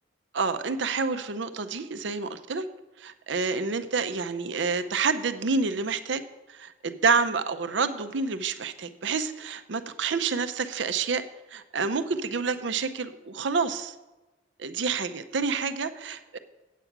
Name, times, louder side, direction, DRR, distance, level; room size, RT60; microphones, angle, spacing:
voice 1, 0.3-2.7 3.0-6.2 6.5-11.2 11.5-14.0 14.6-16.4, right 4 dB, 70° right, 11 dB, 0.6 m, -28 dB
8.3 x 8.0 x 5.9 m, 1.1 s
head